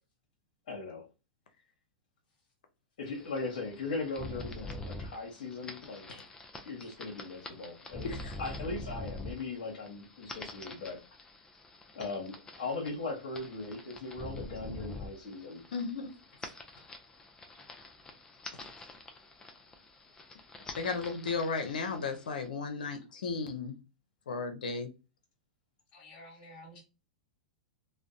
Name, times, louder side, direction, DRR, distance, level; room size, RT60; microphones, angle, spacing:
voice 1, 0.7-1.1 3.0-6.1 6.6-11.0 11.9-15.6 16.8-16.9, left 3 dB, 65° left, -1 dB, 0.9 m, -39 dB
sound 1, 3.1-22.5, left 2 dB, 15° left, 0.4 m, -46 dB
voice 2, 8.0-8.3 15.7-16.1 20.8-23.7 24.3-24.9, left 4 dB, 85° left, 6 dB, 0.5 m, -35 dB
voice 3, 25.9-26.8, left 1 dB, 40° left, -5 dB, 0.8 m, -51 dB
2.5 x 2.0 x 2.4 m, 0.30 s
hypercardioid pair, 120°, 4 cm